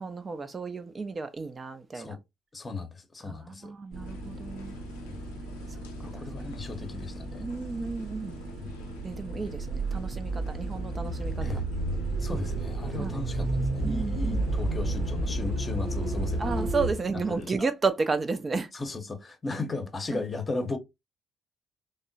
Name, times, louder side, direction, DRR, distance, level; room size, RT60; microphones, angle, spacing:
voice 1, 0.0-2.2 3.2-4.8 7.4-8.4 9.0-11.3 13.0-13.2 13.8-14.5 16.4-18.7, right 4 dB, 30° right, 0.4 m, -32 dB
voice 2, 2.5-3.7 5.1-5.2 6.0-7.5 8.5-8.7 11.4-11.6 12.2-16.9 17.3-17.7 18.7-20.8, left 3 dB, 30° left, 0.7 m, -36 dB
sound 1, 3.9-16.9, right 2 dB, 60° right, 0.8 m, -32 dB
sound 2, 4.0-17.5, left 4 dB, 75° left, 0.4 m, -49 dB
3.5 x 2.0 x 2.6 m
figure-of-eight pair, 45°, 0 cm